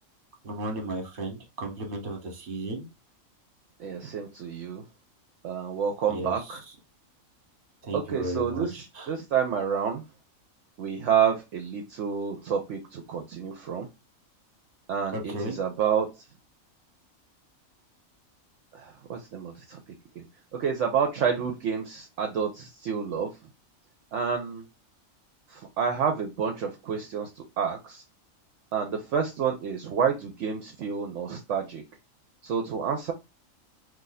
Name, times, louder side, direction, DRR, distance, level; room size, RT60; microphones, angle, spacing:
voice 1, 0.4-2.8 6.0-6.6 7.8-9.1 15.1-15.6, right 2 dB, 45° right, 3 dB, 1.1 m, -34 dB
voice 2, 3.8-4.8 5.4-6.6 7.9-8.8 9.1-10.0 10.8-13.9 14.9-16.2 18.7-19.8 20.2-20.3 20.6-23.3 24.1-24.6 25.5-28.0 28.7-31.8 32.4-33.1, right 7 dB, 70° right, 3 dB, 0.9 m, -29 dB
2.7 x 2.6 x 3.9 m, 0.25 s
omnidirectional pair, 1.4 m